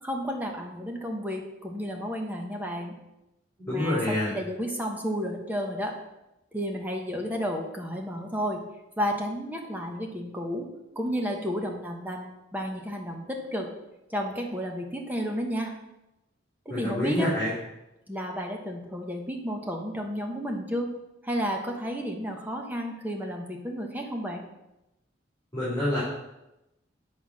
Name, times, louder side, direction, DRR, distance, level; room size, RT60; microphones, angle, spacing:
voice 1, 0.0-3.0 3.7-5.9 6.5-8.6 9.0-10.7 10.9-13.7 14.1-15.7 16.6-17.3 18.1-20.9 21.2-24.4, equal, 10° right, 1 dB, 1.0 m, -32 dB
voice 2, 3.7-4.3 16.7-17.5 25.5-26.0, left 1 dB, 15° left, -12 dB, 3.2 m, -27 dB
8.3 x 4.2 x 6.1 m, 0.94 s
head